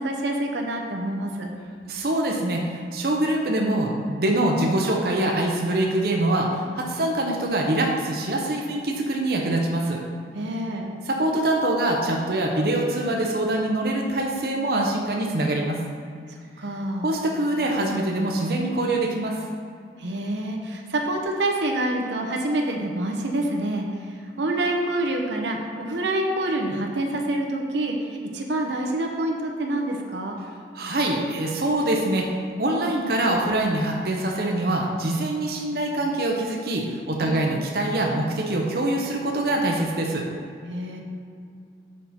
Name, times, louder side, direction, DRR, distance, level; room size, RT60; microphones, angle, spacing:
voice 1, 0.0-1.5 10.3-10.9 16.3-17.1 20.0-30.4 37.2-37.5 40.7-41.0, right 1 dB, 85° right, 1 dB, 0.8 m, -27 dB
voice 2, 1.9-10.0 11.1-15.8 17.0-19.4 30.7-32.3 32.6-40.2, right 1 dB, 60° right, 0 dB, 0.7 m, -24 dB
6.4 x 5.5 x 4.2 m, 2.2 s
head